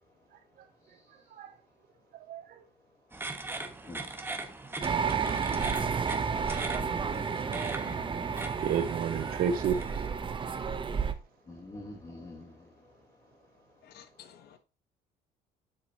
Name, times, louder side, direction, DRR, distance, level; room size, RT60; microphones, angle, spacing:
voice 1, 2.1-2.6 7.9-8.2 8.6-9.8, right 8 dB, 60° right, 0.9 m, -31 dB
sound 1, 3.1-10.1, right 2 dB, 15° right, 1.4 m, -41 dB
voice 2, 3.8-4.4 6.8-8.6 11.4-12.9, left 2 dB, 25° left, 3.4 m, -47 dB
sound 2, 4.8-11.1, right 6 dB, 30° right, 0.9 m, -31 dB
voice 3, 13.9-14.6, left 10 dB, 70° left, 1.2 m, -53 dB
8.0 x 6.6 x 3.0 m
cardioid pair, 110°, 17 cm